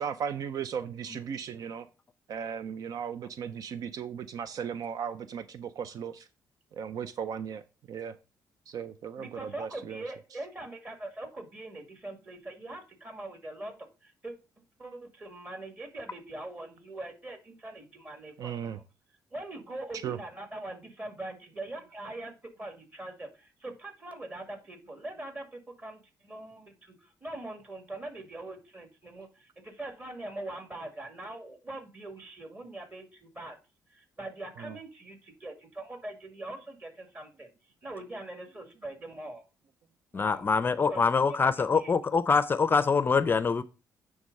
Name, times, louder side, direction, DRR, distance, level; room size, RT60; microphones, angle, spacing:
voice 1, 0.0-1.9 2.3-6.2 6.7-7.6 7.9-8.1 8.7-10.0 18.4-18.8 20.0-20.2 34.6-34.8, right 7 dB, 65° right, 0.5 m, -36 dB
voice 2, 9.2-14.4 14.8-18.7 19.3-33.6 33.9-37.5 37.8-39.4 40.1-40.5 40.9-41.0 41.3-41.9, right 2 dB, 25° right, 2.2 m, -42 dB
voice 3, 40.1-43.6, left 5 dB, 30° left, 0.5 m, -24 dB
9.4 x 3.6 x 5.3 m
cardioid pair, 100°, 7 cm